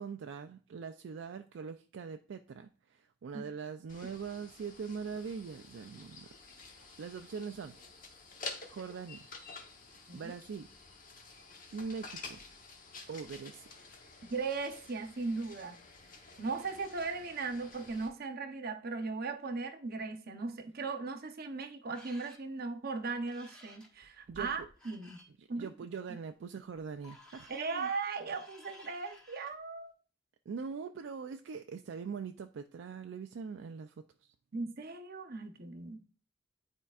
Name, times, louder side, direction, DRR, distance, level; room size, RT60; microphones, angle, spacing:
voice 1, 0.0-6.4 6.7-7.8 8.7-9.3 10.1-10.7 11.7-12.4 13.1-13.8 24.3-24.7 25.4-27.9 30.5-34.3, right 5 dB, 70° right, 0.4 m, -42 dB
sound 1, 3.9-18.1, left 3 dB, 50° left, 1.0 m, -50 dB
voice 2, 14.3-15.8 16.4-25.2 25.5-25.7 27.5-29.9 34.5-36.0, right 4 dB, 55° right, 0.8 m, -38 dB
sound 2, 21.9-22.4 23.3-25.3 26.7-29.6, left 1 dB, 5° left, 1.4 m, -56 dB
10.0 x 4.5 x 2.4 m
head